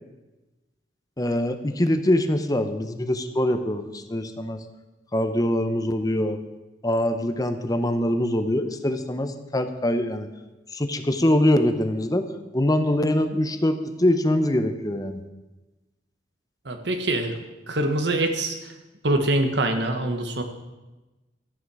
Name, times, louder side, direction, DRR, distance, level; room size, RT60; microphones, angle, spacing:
voice 1, 1.2-4.6 5.1-6.4 6.8-10.3 10.7-15.2, left 1 dB, 20° left, 8 dB, 0.8 m, -23 dB
voice 2, 16.6-17.4 17.7-18.7 19.0-20.4, right 1 dB, 70° right, 6 dB, 1.4 m, -24 dB
13.0 x 9.6 x 4.9 m, 1.1 s
head